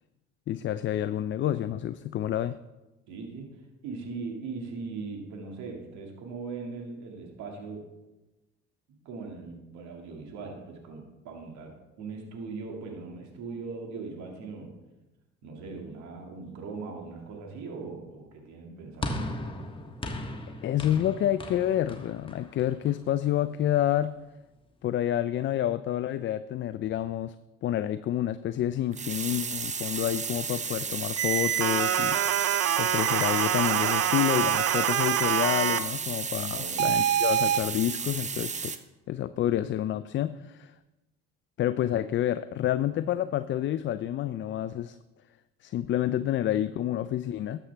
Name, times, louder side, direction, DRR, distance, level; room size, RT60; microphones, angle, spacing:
voice 1, 0.5-2.6 20.6-24.1 24.8-27.3 27.6-32.2 32.8-38.8 39.1-40.7 41.6-45.0 45.6-47.6, left 11 dB, 40° left, 13 dB, 0.4 m, -28 dB
voice 2, 3.1-3.6 3.8-7.9 9.1-14.7 15.4-19.1 36.5-37.1, right 4 dB, 75° right, 2 dB, 2.1 m, -40 dB
sound 1, 19.0-23.4, left 1 dB, 20° left, 1.3 m, -37 dB
sound 2, 28.9-38.8, right 5 dB, 25° right, 0.8 m, -34 dB
sound 3, 31.2-35.8 36.8-37.6, right 10 dB, 55° right, 0.7 m, -25 dB
12.5 x 7.3 x 3.4 m, 1.1 s
supercardioid pair, 80°, 29 cm